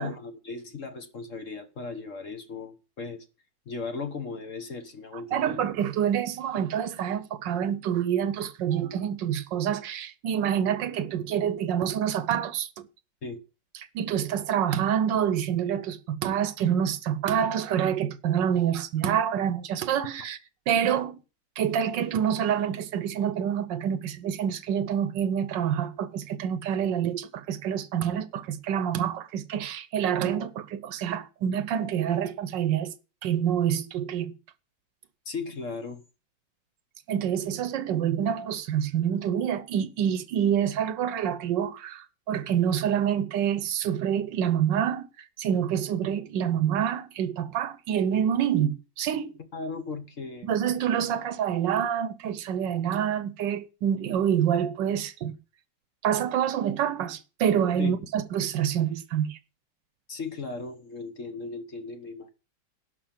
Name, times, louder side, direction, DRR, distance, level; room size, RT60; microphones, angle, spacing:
voice 1, 0.0-3.3 3.7-5.6 13.2-13.4 35.2-36.0 49.5-50.5 57.8-58.0 60.1-62.3, left 4 dB, 45° left, 1.4 m, -37 dB
voice 2, 5.3-12.9 13.9-20.4 20.7-21.2 21.6-32.9 33.2-34.3 37.1-45.1 45.4-49.4 50.4-55.3 56.0-59.4, right 9 dB, 75° right, 1.4 m, -27 dB
11.5 x 5.5 x 7.4 m
omnidirectional pair, 2.1 m